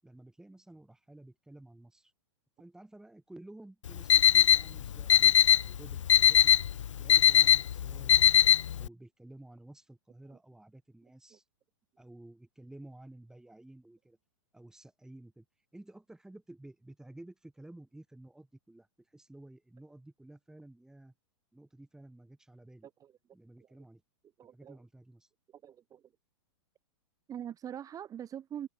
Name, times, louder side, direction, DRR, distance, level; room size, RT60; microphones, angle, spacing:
voice 1, 0.0-2.1 2.6-6.5 6.9-11.4 12.0-14.2 14.5-15.4 15.7-18.9 19.1-21.1 21.5-22.9 23.3-24.0 24.5-25.3, right 1 dB, 5° right, 7.8 m, -53 dB
Alarm, 3.9-8.9, left 9 dB, 85° left, 0.9 m, -22 dB
voice 2, 24.4-24.8 25.5-26.0 27.3-28.7, right 9 dB, 20° right, 7.0 m, -43 dB
open air
hypercardioid pair, 130°, 16 cm